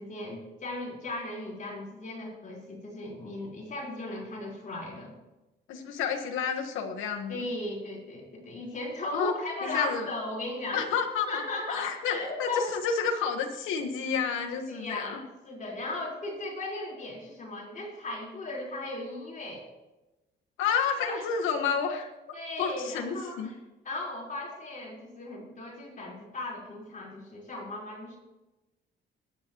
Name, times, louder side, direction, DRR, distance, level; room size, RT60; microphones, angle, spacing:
voice 1, 0.0-5.1 7.3-10.9 11.3-12.7 14.7-19.6 21.0-21.2 22.3-23.5 23.8-28.2, left 2 dB, 40° left, -3 dB, 4.3 m, -37 dB
voice 2, 5.7-7.4 9.1-9.3 9.6-10.1 10.7-11.4 11.7-15.2 20.6-22.1 22.6-23.5, left 6 dB, 90° left, 2 dB, 1.4 m, -30 dB
22.0 x 9.7 x 3.0 m, 1.0 s
cardioid pair, 90°, 20 cm